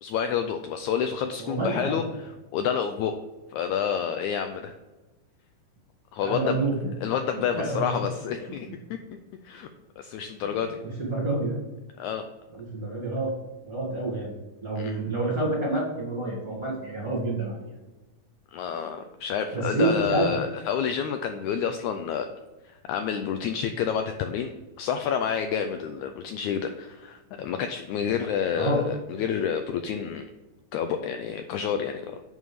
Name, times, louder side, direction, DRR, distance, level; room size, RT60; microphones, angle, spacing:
voice 1, 0.0-3.2 3.5-4.7 6.1-6.6 7.0-9.0 9.4-9.7 10.0-10.8 12.0-12.2 14.8-15.0 18.5-22.3 22.6-30.3 30.7-32.2, left 7 dB, 80° left, 7 dB, 1.7 m, -29 dB
voice 2, 1.4-2.0 6.2-6.9 7.5-8.1 10.8-11.6 12.5-13.3 13.6-14.3 14.6-17.7 19.5-20.3 28.6-28.8, right 2 dB, 35° right, -6 dB, 1.7 m, -28 dB
9.3 x 3.6 x 6.7 m, 1.1 s
omnidirectional pair, 3.8 m